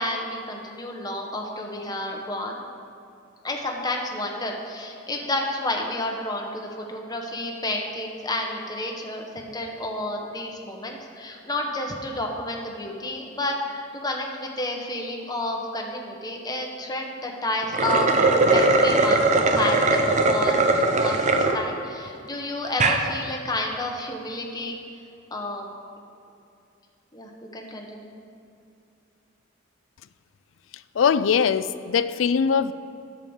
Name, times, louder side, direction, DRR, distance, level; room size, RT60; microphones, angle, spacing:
voice 1, 0.0-2.6 3.4-24.8 25.3-25.7 27.1-28.1, left 1 dB, 20° left, 1 dB, 1.1 m, -30 dB
sound 1, 17.6-21.6 22.1-22.2 22.7-23.0, right 3 dB, 40° right, 0.7 m, -20 dB
voice 2, 30.9-32.7, left 6 dB, 80° left, 14 dB, 0.4 m, -21 dB
10.5 x 5.2 x 7.2 m, 2.7 s
head